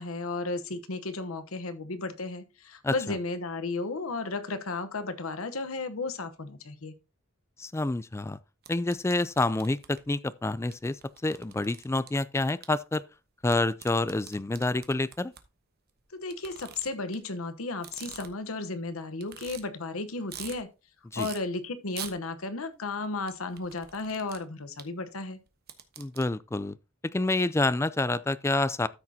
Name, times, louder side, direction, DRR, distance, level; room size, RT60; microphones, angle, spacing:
voice 1, 0.0-6.9 16.1-20.7 21.1-25.4, left 3 dB, 90° left, 1.0 m, -34 dB
voice 2, 7.6-8.4 8.7-11.0 11.2-13.0 13.4-15.3 21.1-21.3 26.0-26.8 27.0-28.9, left 2 dB, 15° left, 0.3 m, -28 dB
sound 1, 8.6-10.0 10.7-10.8 11.0-12.1 12.6-12.7 13.5-15.4 16.3-17.2 17.7-18.5 18.9-19.0 19.2-19.6 20.0-20.6 21.1-21.4 21.9-22.1 23.3-24.4 24.8-24.9 25.5-26.2, right 9 dB, 50° right, 1.1 m, -43 dB
13.0 x 6.3 x 2.8 m
head